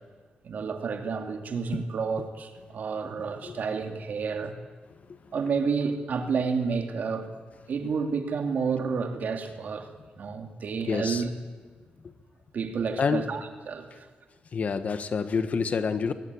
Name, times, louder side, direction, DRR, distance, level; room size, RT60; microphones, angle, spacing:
voice 1, 0.4-4.6 5.3-7.3 7.7-9.9 10.2-11.3 12.5-14.1, right 5 dB, 60° right, 6 dB, 2.7 m, -30 dB
voice 2, 10.9-11.2 12.0-12.1 13.0-13.3 14.5-16.1, left 5 dB, 50° left, 11 dB, 1.4 m, -28 dB
22.5 x 19.0 x 9.7 m, 1.4 s
wide cardioid pair, 120°, 3 cm